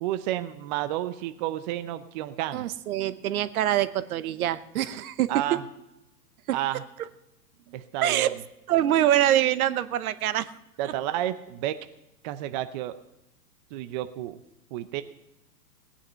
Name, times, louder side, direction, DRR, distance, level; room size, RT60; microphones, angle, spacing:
voice 1, 0.0-2.6 5.3-5.6 6.5-6.8 7.7-8.3 10.8-11.8 12.2-13.0 13.7-14.4 14.7-15.0, right 13 dB, 30° right, 11 dB, 0.5 m, -31 dB
voice 2, 2.5-5.6 6.5-6.6 8.0-8.3 8.7-10.5 10.8-10.9, right 12 dB, 60° right, 14 dB, 1.0 m, -24 dB
17.5 x 9.9 x 5.6 m, 0.88 s
hypercardioid pair, 130°, 49 cm